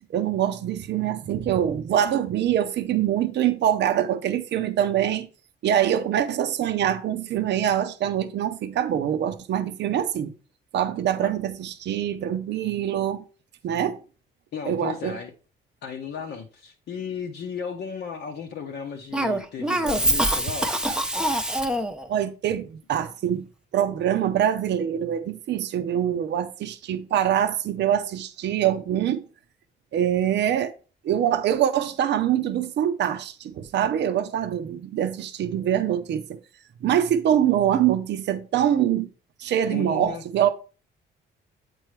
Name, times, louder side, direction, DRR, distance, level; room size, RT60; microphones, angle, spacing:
voice 1, 0.1-5.3 5.6-10.3 10.7-13.2 13.6-14.0 14.6-15.2 22.1-23.5 23.7-29.2 29.9-30.7 31.0-36.4 36.8-39.1 39.4-40.5, right 10 dB, 60° right, 0.6 m, -24 dB
voice 2, 14.5-15.3 15.8-20.9 39.7-40.2, left 6 dB, 60° left, 0.8 m, -35 dB
Cough, 19.1-22.1, right 1 dB, 5° right, 0.7 m, -24 dB
7.6 x 4.6 x 3.2 m
cardioid pair, 90°, 20 cm